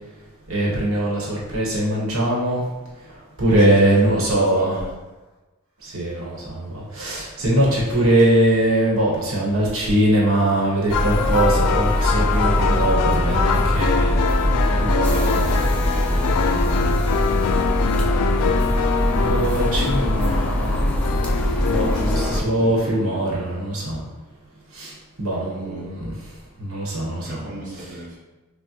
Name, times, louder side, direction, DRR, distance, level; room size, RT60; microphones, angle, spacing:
voice 1, 0.5-2.6 3.4-4.8 5.8-14.2 14.7-16.7 19.1-20.9 21.7-24.0 24.7-24.9 25.2-26.1 26.6-27.4, right 1 dB, 65° right, -4 dB, 1.0 m, -22 dB
voice 2, 3.5-4.9 7.4-7.7 14.9-17.4 19.8-20.2 21.7-23.6 25.6-25.9 27.2-28.2, right 1 dB, 35° right, -7 dB, 0.9 m, -37 dB
sound 1, 8.2-8.5 9.0-9.1 10.6-10.7 10.9-22.4, left 6 dB, 90° left, 0.3 m, -24 dB
sound 2, 10.9-22.4, equal, 5° left, 0.4 m, -22 dB
5.8 x 2.1 x 2.8 m, 1.2 s
head